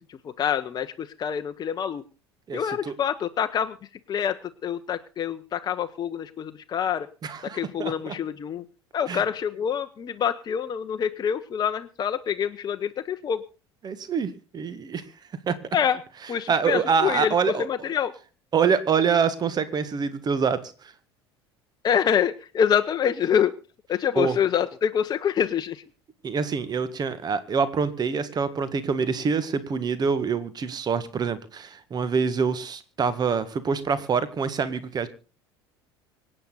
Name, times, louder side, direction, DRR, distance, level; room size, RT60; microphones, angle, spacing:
voice 1, 0.0-2.0 2.5-3.8 4.1-7.1 7.4-8.6 8.9-13.4 15.7-16.0 16.3-18.1 21.8-23.6 23.9-25.8, left 8 dB, 30° left, 9 dB, 0.8 m, -26 dB
voice 2, 2.5-2.9 7.2-8.2 9.1-9.2 13.8-15.0 15.5-15.6 16.5-17.7 18.5-20.9 24.2-24.4 26.2-35.1, right 6 dB, 30° right, 14 dB, 1.7 m, -25 dB
25.0 x 8.9 x 4.0 m, 0.35 s
figure-of-eight pair, 65°, 14 cm